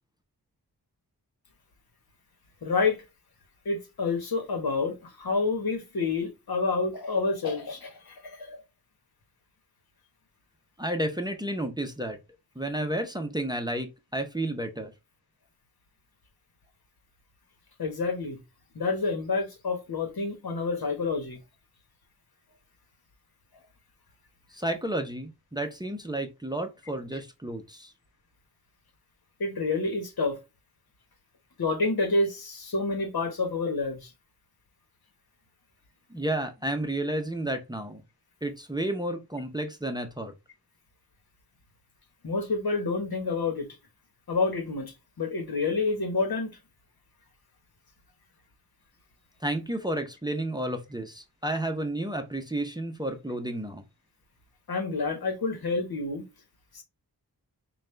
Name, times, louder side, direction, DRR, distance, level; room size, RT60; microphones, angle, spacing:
voice 1, 2.6-3.0 3.6-8.6 17.8-18.4 18.7-21.4 29.4-30.4 31.6-34.1 42.2-43.7 44.3-46.5 54.7-56.3 56.7-56.8, left 3 dB, 65° left, 1.3 m, -28 dB
voice 2, 10.8-12.2 12.6-14.9 24.5-27.9 36.1-38.0 38.4-40.3 49.4-53.8, right 1 dB, 10° right, 0.7 m, -31 dB
5.2 x 2.3 x 3.2 m
wide cardioid pair, 85°, 39 cm